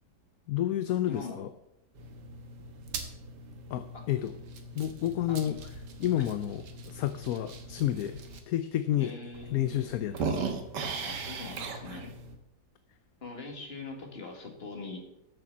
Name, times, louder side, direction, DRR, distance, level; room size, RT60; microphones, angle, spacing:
voice 1, 0.5-1.5 3.7-4.3 4.7-5.6 6.0-9.1 9.5-10.4, left 12 dB, 70° left, 11 dB, 1.0 m, -30 dB
voice 2, 1.1-1.5 3.9-4.1 5.3-5.6 6.2-6.3 9.0-9.9 11.0-12.2 13.2-15.0, left 4 dB, 35° left, 3 dB, 2.0 m, -42 dB
sound 1, 1.9-8.4 8.9-9.0 9.3-12.4, right 4 dB, 80° right, 1.8 m, -39 dB
8.4 x 6.9 x 7.2 m, 0.84 s
omnidirectional pair, 1.8 m